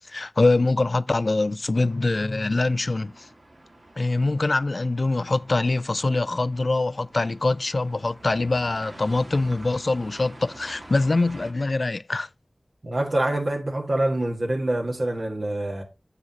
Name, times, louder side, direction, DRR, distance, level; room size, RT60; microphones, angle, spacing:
voice 1, 0.1-3.3 4.0-12.3, left 2 dB, 70° left, 0.4 m, -24 dB
sound 1, 1.7-11.5, right 1 dB, 85° right, 2.9 m, -47 dB
voice 2, 12.8-15.8, right 1 dB, 70° right, 1.5 m, -25 dB
9.7 x 7.7 x 2.8 m
wide cardioid pair, 60°, 0 cm